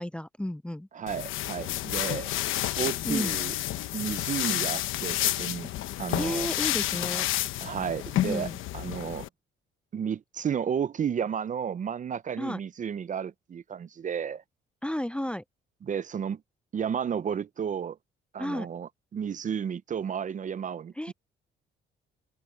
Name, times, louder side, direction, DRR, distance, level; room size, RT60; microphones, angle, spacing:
voice 1, 0.0-0.9 3.0-3.4 6.2-7.3 8.2-8.6 12.4-12.6 14.8-15.4 18.4-18.7 21.0-21.1, left 1 dB, 5° left, 0.5 m, -32 dB
voice 2, 0.9-2.3 2.8-3.5 3.9-5.7 6.0-6.5 7.6-8.5 8.7-9.3 9.9-14.4 15.8-16.4 16.7-18.0 18.3-21.1, right 8 dB, 40° right, 0.5 m, -32 dB
sound 1, 1.1-9.3, left 14 dB, 90° left, 1.1 m, -30 dB
open air
cardioid pair, 90°, 20 cm